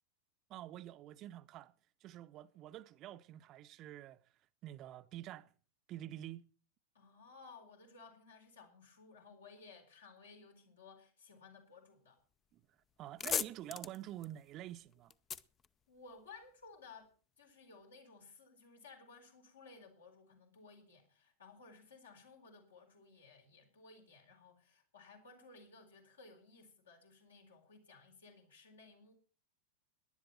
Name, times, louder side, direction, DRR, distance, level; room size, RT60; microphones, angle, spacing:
voice 1, 0.5-1.7 2.0-5.5 5.9-6.5 12.5-15.1, right 13 dB, 35° right, 0.7 m, -48 dB
voice 2, 6.9-12.2 15.9-29.1, left 4 dB, 70° left, 4.3 m, -58 dB
sound 1, 12.5-12.6 12.9-16.5, left 7 dB, 25° left, 0.6 m, -41 dB
18.0 x 11.0 x 4.3 m
figure-of-eight pair, 90°, 0 cm